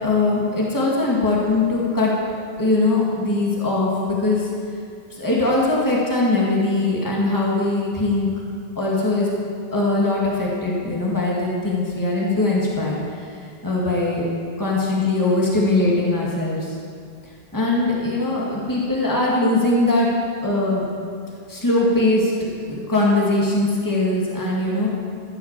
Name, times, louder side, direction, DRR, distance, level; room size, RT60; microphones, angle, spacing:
voice 1, 0.0-2.1 2.6-4.5 5.1-8.3 8.8-9.3 9.7-13.3 13.6-14.2 14.6-16.7 17.5-20.1 20.4-20.9 21.5-22.3 22.7-24.9, left 2 dB, 20° left, -4 dB, 2.0 m, -21 dB
14.5 x 6.4 x 7.3 m, 2.3 s
omnidirectional pair, 1.0 m